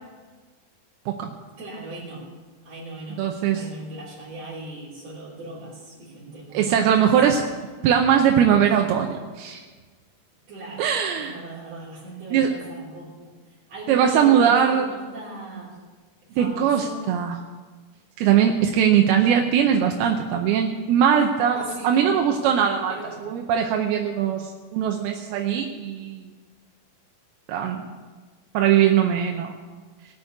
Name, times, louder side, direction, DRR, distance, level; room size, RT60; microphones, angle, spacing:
voice 1, 1.6-2.3 2.6-7.2 10.5-10.9 11.1-13.3 13.7-15.8 16.3-17.1 21.4-22.3 22.9-23.3, right 2 dB, 45° right, -9 dB, 4.4 m, -38 dB
voice 2, 3.2-3.7 6.5-7.5 7.8-9.6 10.8-11.4 12.3-12.6 13.9-14.9 16.4-17.4 18.2-23.0 23.3-26.2 27.5-27.8 28.5-29.5, right 8 dB, 85° right, 3 dB, 2.8 m, -20 dB
18.0 x 6.9 x 8.0 m, 1.4 s
omnidirectional pair, 4.3 m